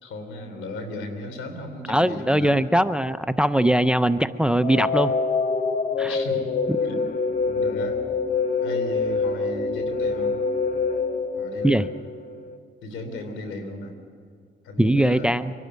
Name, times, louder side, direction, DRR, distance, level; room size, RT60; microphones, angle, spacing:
voice 1, 0.0-2.6 6.0-6.5 6.8-7.0 7.5-8.0 8.6-10.4 11.4-11.9 12.8-13.9 14.6-15.3, left 2 dB, 80° left, 7 dB, 3.2 m, -35 dB
voice 2, 1.9-5.1 6.0-6.2 11.6-11.9 14.8-15.5, right 1 dB, 5° right, 13 dB, 0.5 m, -21 dB
sound 1, 4.6-12.6, left 4 dB, 45° left, 1.2 m, -25 dB
23.5 x 12.0 x 9.3 m, 2.1 s
cardioid pair, 90°, 20 cm